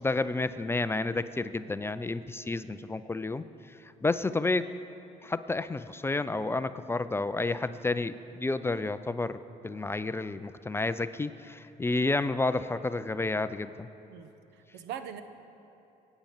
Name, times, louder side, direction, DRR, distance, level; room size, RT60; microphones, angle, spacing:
voice 1, 0.0-4.7 5.2-13.9, left 3 dB, 15° left, 12 dB, 0.4 m, -31 dB
voice 2, 14.1-15.2, right 9 dB, 80° right, 10 dB, 0.9 m, -42 dB
20.5 x 9.0 x 5.6 m, 3.0 s
cardioid pair, 110°, 17 cm